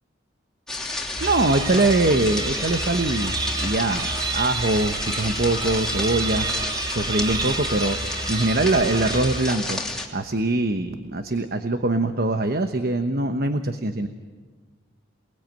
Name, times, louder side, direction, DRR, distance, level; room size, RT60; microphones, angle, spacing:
sound 1, 0.7-10.1, left 2 dB, 5° left, 3.0 m, -31 dB
sound 2, 1.2-9.9, right 3 dB, 20° right, 0.9 m, -29 dB
voice 1, 1.2-6.5 6.9-9.8 10.1-14.1, right 2 dB, 50° right, 8 dB, 1.1 m, -23 dB
29.0 x 20.0 x 9.1 m, 1.4 s
head